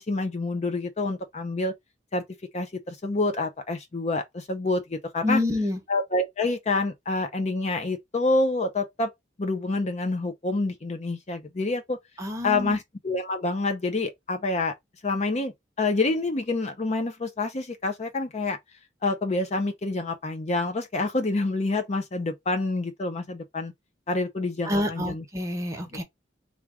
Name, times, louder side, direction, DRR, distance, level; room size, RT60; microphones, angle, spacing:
voice 1, 0.0-1.7 2.1-2.2 2.5-5.4 5.9-9.1 9.4-12.0 12.4-14.7 15.0-15.5 15.8-18.6 19.0-23.7 24.1-25.2, left 2 dB, 35° left, 0.6 m, -27 dB
voice 2, 5.2-5.8 12.2-12.8 24.6-26.0, left 1 dB, 15° right, 1.0 m, -27 dB
3.5 x 2.5 x 4.5 m
head